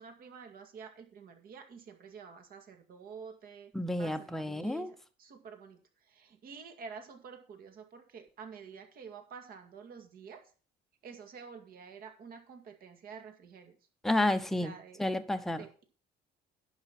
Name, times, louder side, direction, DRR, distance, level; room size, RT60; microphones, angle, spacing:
voice 1, 0.0-3.7 4.0-5.8 6.1-10.4 11.0-13.7 14.6-15.0 15.5-15.8, right 6 dB, 50° right, 2.1 m, -49 dB
voice 2, 3.7-4.9 14.0-14.7 15.0-15.7, left 1 dB, ahead, 0.8 m, -30 dB
10.5 x 5.7 x 5.9 m
cardioid pair, 140°, 19 cm